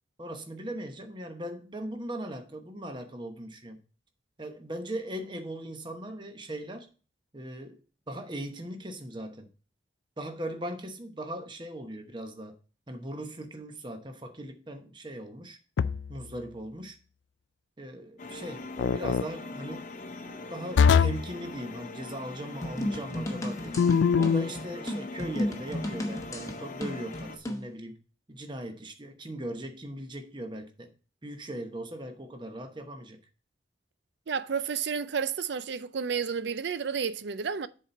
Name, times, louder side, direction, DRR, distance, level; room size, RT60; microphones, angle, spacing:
voice 1, 0.2-3.8 4.4-6.9 7.3-7.8 8.1-9.5 10.2-12.6 12.9-15.6 16.1-17.0 17.8-19.9 20.2-23.8 24.1-28.0 28.3-30.9 31.2-33.2, right 1 dB, 25° right, 0.9 m, -39 dB
sound 1, 15.8-16.3 18.8-19.3 20.8-21.3 23.8-24.5, left 6 dB, 75° left, 0.3 m, -22 dB
sound 2, 18.2-27.4, left 3 dB, 40° left, 0.7 m, -42 dB
sound 3, 22.6-27.7, equal, 15° left, 0.9 m, -34 dB
voice 2, 34.3-37.7, right 6 dB, 65° right, 0.5 m, -31 dB
7.4 x 4.1 x 5.4 m
head